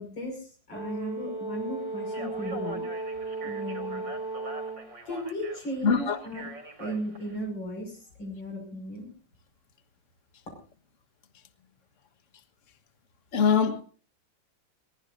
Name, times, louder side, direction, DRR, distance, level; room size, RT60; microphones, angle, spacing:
voice 1, 0.0-2.8 3.4-4.0 5.1-6.5 6.8-9.1, equal, 75° left, 6.6 m, -36 dB
Brass instrument, 0.7-4.9, right 3 dB, 30° right, 2.9 m, -35 dB
Speech, 2.0-7.4, equal, 70° right, 4.6 m, -43 dB
voice 2, 5.8-6.2 13.3-13.8, left 6 dB, 45° left, 1.6 m, -23 dB
22.0 x 19.0 x 2.6 m
omnidirectional pair, 2.1 m